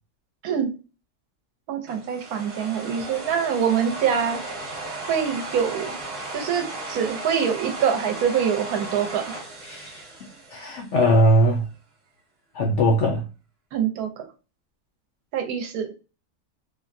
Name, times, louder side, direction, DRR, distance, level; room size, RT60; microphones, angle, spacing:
voice 1, 1.7-4.4 5.1-6.0 6.3-9.3 13.7-14.2 15.3-15.9, right 8 dB, 75° right, 1.0 m, -25 dB
sound 1, 1.9-11.1, right 2 dB, 45° right, 1.0 m, -36 dB
voice 2, 9.6-11.7 12.5-13.3, equal, 70° left, 0.7 m, -21 dB
3.5 x 2.0 x 2.5 m
omnidirectional pair, 1.7 m